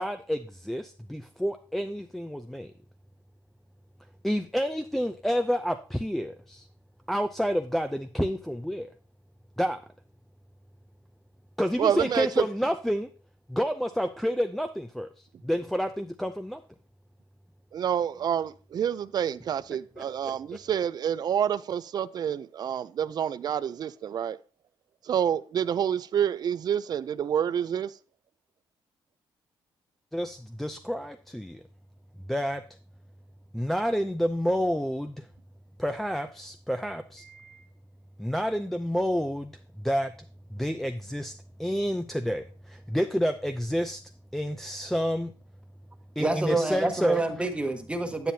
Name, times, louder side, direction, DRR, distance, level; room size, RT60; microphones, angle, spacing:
voice 1, 0.0-2.7 4.2-6.6 7.1-8.9 9.6-9.8 11.6-13.1 13.5-15.1 15.4-16.6 20.0-20.1 30.1-31.6 32.3-32.6 33.5-35.2 35.8-37.6 38.2-39.5 39.8-40.1 40.5-41.3 41.6-42.4 42.9-44.0 44.3-45.3 46.2-47.2, equal, 5° left, 0.5 m, -29 dB
voice 2, 11.8-12.4 17.7-24.4 25.0-27.9, right 9 dB, 50° right, 0.4 m, -28 dB
voice 3, 46.2-48.3, right 2 dB, 10° right, 1.2 m, -27 dB
9.3 x 8.6 x 2.7 m
cardioid pair, 95°, 9 cm